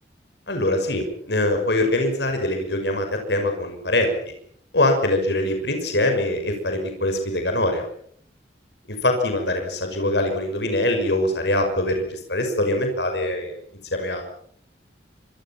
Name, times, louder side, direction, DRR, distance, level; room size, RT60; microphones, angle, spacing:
voice 1, 0.5-4.1 4.7-7.8 8.9-13.5 13.9-14.2, left 1 dB, 70° left, 5 dB, 6.0 m, -23 dB
26.0 x 24.5 x 5.9 m, 0.63 s
head